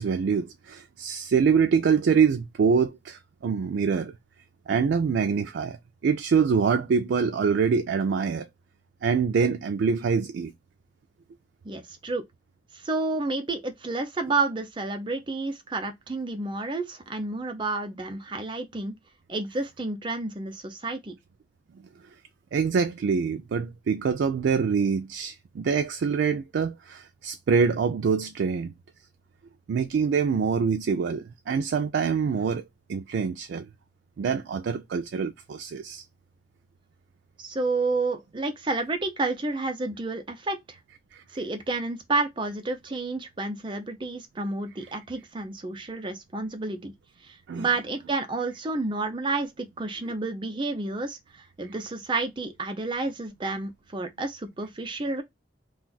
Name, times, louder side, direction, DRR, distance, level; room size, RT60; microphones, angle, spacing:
voice 1, 0.0-4.1 4.7-5.8 6.0-8.5 9.0-10.5 22.5-28.7 29.7-32.6 32.9-33.7 34.2-36.0 47.5-47.7, right 6 dB, 90° right, 0.3 m, -25 dB
voice 2, 11.6-12.2 12.8-19.0 19.3-21.1 37.4-40.8 41.3-46.9 47.2-55.2, right 3 dB, 30° right, 0.5 m, -30 dB
2.5 x 2.3 x 3.8 m
head